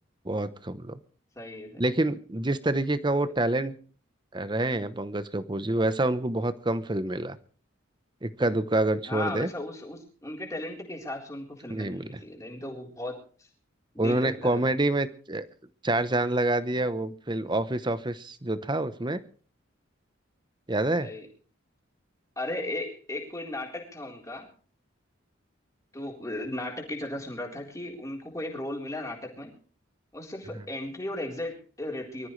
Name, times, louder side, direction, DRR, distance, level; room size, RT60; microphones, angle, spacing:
voice 1, 0.2-1.0 1.8-3.7 4.3-7.4 8.2-9.5 11.7-12.2 14.0-15.5 15.8-19.2 20.7-21.1, right 2 dB, 20° right, 13 dB, 0.9 m, -27 dB
voice 2, 1.4-1.8 9.1-13.2 13.9-14.7 21.0-21.3 22.4-24.5 25.9-29.5 30.1-32.3, left 1 dB, 15° left, -1 dB, 4.0 m, -36 dB
24.5 x 14.0 x 3.3 m, 0.42 s
head